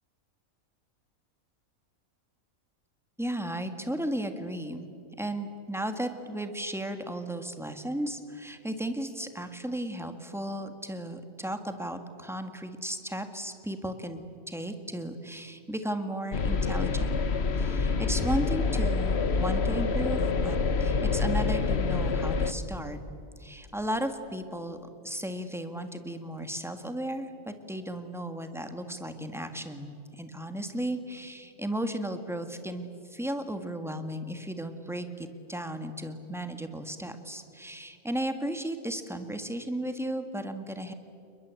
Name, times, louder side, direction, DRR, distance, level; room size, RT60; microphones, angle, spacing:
voice 1, 3.2-4.9 5.2-17.2 17.5-23.0 23.4-24.8 25.0-40.9, right 1 dB, ahead, 7 dB, 1.8 m, -35 dB
sound 1, 16.3-22.5, left 4 dB, 50° left, 1.3 m, -27 dB
29.0 x 22.0 x 8.4 m, 2.5 s
omnidirectional pair, 1.5 m